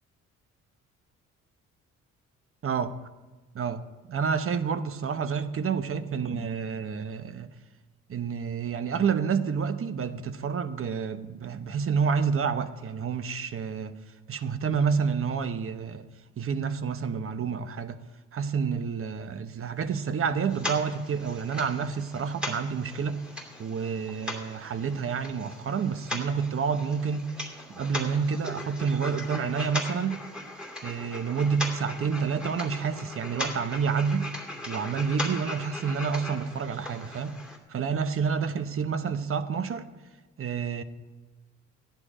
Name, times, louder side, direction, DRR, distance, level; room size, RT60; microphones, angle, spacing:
voice 1, 2.6-3.0 3.5-7.5 8.1-14.0 14.3-16.1 16.4-18.0 18.3-23.2 23.6-27.3 27.7-30.2 30.8-34.3 34.7-37.4 37.7-39.9 40.4-40.8, right 6 dB, 45° right, 1.0 m, -29 dB
sound 1, 20.5-37.6, left 1 dB, 5° right, 2.5 m, -38 dB
14.5 x 10.5 x 5.0 m
cardioid pair, 90°, 30 cm